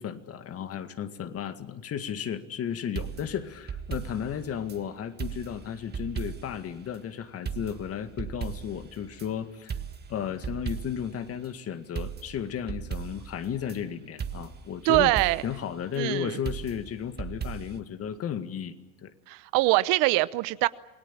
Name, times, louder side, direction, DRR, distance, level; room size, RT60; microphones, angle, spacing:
voice 1, 0.0-9.7 10.1-15.1 15.4-19.1, left 8 dB, 40° left, 9 dB, 2.0 m, -34 dB
sound 1, 3.0-4.8 5.2-6.7 6.9-7.0 7.5-9.3 9.7-11.2 11.4-11.5 12.0-13.8 14.2-15.7 16.5-17.8, right 7 dB, 25° right, 1.8 m, -37 dB
voice 2, 14.8-15.4 16.0-16.4 19.3-20.7, right 20 dB, 60° right, 17 dB, 0.9 m, -23 dB
27.5 x 18.5 x 9.0 m, 0.96 s
supercardioid pair, 100°, 38 cm